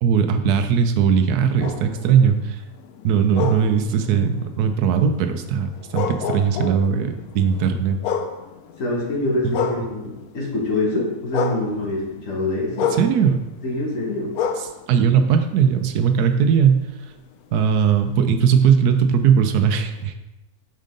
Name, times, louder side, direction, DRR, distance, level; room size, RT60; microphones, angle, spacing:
voice 1, 0.0-2.6 3.0-8.0 9.4-9.5 13.0-13.4 14.9-16.8 17.5-20.1, right 7 dB, 85° right, 7 dB, 1.1 m, -19 dB
sound 1, 1.2-10.5 10.8-16.0 16.5-20.1, left 6 dB, 80° left, 1.1 m, -32 dB
voice 2, 8.8-12.9 13.6-14.3, left 2 dB, 60° left, -3 dB, 1.8 m, -25 dB
5.4 x 5.1 x 3.8 m, 0.97 s
omnidirectional pair, 1.6 m